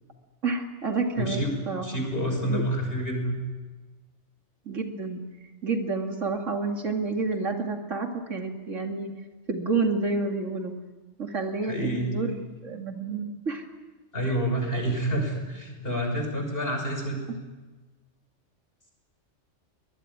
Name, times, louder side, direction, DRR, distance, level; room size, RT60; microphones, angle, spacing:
voice 1, 0.4-2.0 2.4-2.6 4.7-9.1 9.5-10.7 11.2-13.7 14.2-14.3, right 3 dB, 80° right, 3 dB, 2.8 m, -29 dB
voice 2, 1.2-1.5 1.8-3.4 11.7-12.2 14.1-17.2, right 1 dB, 50° left, 3 dB, 6.3 m, -28 dB
23.0 x 20.5 x 9.8 m, 1.3 s
omnidirectional pair, 1.3 m